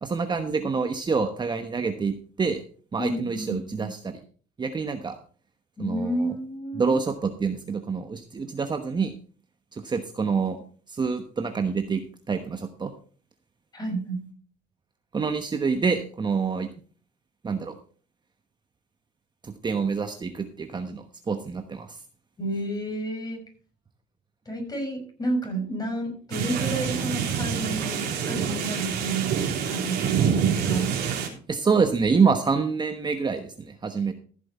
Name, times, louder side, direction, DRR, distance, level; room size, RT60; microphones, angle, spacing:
voice 1, 0.0-2.6 2.9-4.2 4.6-5.2 5.8-6.3 6.7-9.1 9.7-10.6 10.9-12.9 15.1-16.7 17.4-17.7 19.4-22.0 31.5-34.1, right 5 dB, 25° right, 6 dB, 1.1 m, -26 dB
voice 2, 3.0-3.9 5.8-7.0 13.7-14.2 22.4-23.4 24.5-29.3 29.7-30.9, right 2 dB, 25° left, 2 dB, 6.1 m, -30 dB
sound 1, 26.3-31.3, right 7 dB, 75° right, 3.2 m, -26 dB
14.5 x 7.6 x 4.3 m, 0.42 s
cardioid pair, 110°, 17 cm